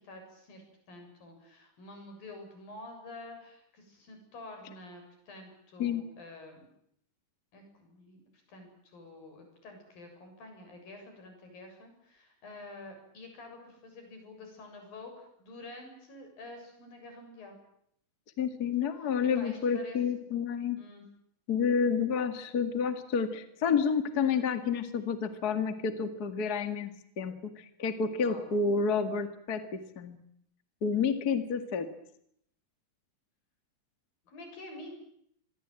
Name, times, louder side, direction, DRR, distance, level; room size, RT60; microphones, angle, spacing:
voice 1, 0.0-6.7 7.5-8.2 8.5-17.6 19.0-20.3 20.8-21.0 28.3-28.5 34.3-34.9, left 2 dB, 90° left, 4 dB, 9.0 m, -48 dB
voice 2, 18.4-20.8 21.5-30.2 30.8-31.9, left 6 dB, 35° left, 9 dB, 2.1 m, -30 dB
27.0 x 23.0 x 9.0 m, 0.72 s
omnidirectional pair, 3.9 m